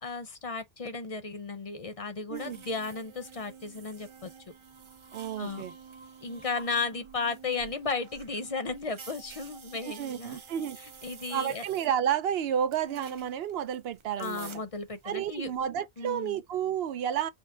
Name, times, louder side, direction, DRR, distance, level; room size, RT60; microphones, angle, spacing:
voice 1, 0.0-4.3 5.4-5.7 6.2-10.4 11.0-11.6 14.2-15.5 16.0-16.4, left 4 dB, 40° left, 0.7 m, -34 dB
sound 1, 2.3-15.7, right 6 dB, 40° right, 0.4 m, -50 dB
voice 2, 5.1-5.7 9.8-10.8 11.3-14.5 15.0-17.3, right 9 dB, 75° right, 0.8 m, -31 dB
5.4 x 2.1 x 3.7 m
omnidirectional pair, 1.0 m